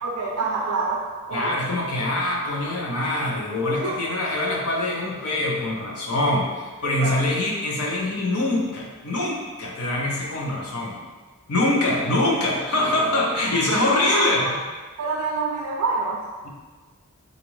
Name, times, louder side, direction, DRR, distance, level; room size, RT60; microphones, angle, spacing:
voice 1, 0.0-1.6 3.8-4.0 6.8-7.2 13.5-14.6 15.0-16.3, right 4 dB, 85° right, -3 dB, 0.4 m, -27 dB
voice 2, 1.3-11.0 11.5-14.5, left 1 dB, 80° left, -2 dB, 0.7 m, -24 dB
3.9 x 2.5 x 3.1 m, 1.4 s
head